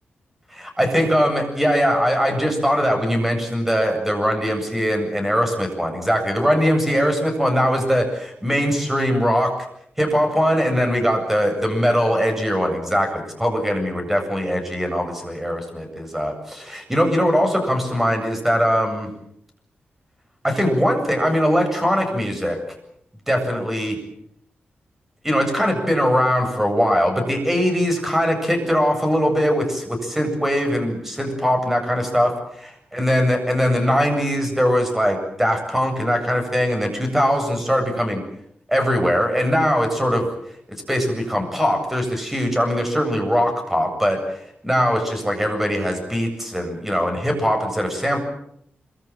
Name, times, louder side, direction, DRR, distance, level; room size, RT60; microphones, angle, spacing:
voice 1, 0.5-9.5 10.0-19.1 20.4-22.6 23.3-24.0 25.2-38.2 38.7-40.3 40.7-48.2, equal, 5° right, 4 dB, 7.9 m, -21 dB
26.0 x 24.5 x 7.7 m, 0.72 s
wide cardioid pair, 130°, 4 cm